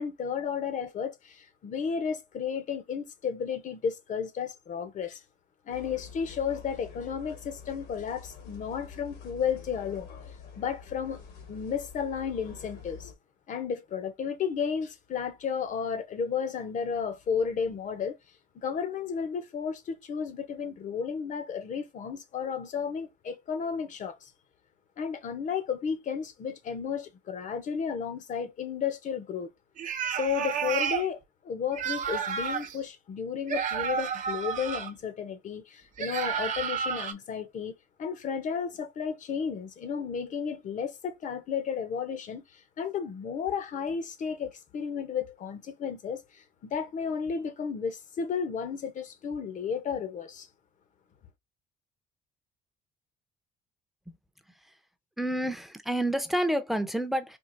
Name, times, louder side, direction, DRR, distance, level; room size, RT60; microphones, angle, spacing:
voice 1, 0.0-5.2 5.7-10.1 10.6-11.2 11.5-13.1 13.5-18.2 18.6-24.3 25.0-29.5 30.1-50.5, left 6 dB, 50° left, 0.7 m, -33 dB
sound 1, 5.7-13.1, left 6 dB, 80° left, 1.4 m, -47 dB
sound 2, 29.8-31.1 31.7-32.8 33.5-34.9 36.0-37.1, right 7 dB, 50° right, 0.6 m, -31 dB
voice 2, 55.2-57.4, right 1 dB, ahead, 0.6 m, -29 dB
4.5 x 2.4 x 2.5 m
cardioid pair, 110°, 17 cm